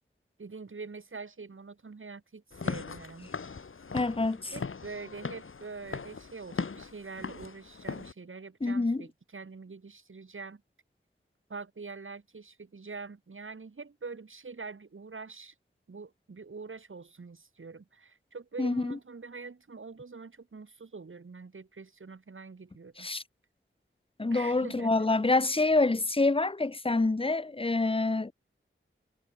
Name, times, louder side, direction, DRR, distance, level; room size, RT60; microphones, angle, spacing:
voice 1, 0.4-3.3 4.5-10.6 11.5-15.5 15.9-23.1 24.3-25.1, right 4 dB, 70° right, 2.2 m, -44 dB
Walk footsteps / Siren, 2.5-8.1, left 5 dB, 75° left, 1.4 m, -39 dB
voice 2, 3.9-4.5 8.6-9.0 18.6-19.0 23.0-23.2 24.2-28.3, left 3 dB, 25° left, 0.7 m, -27 dB
wide cardioid pair, 60°, 21 cm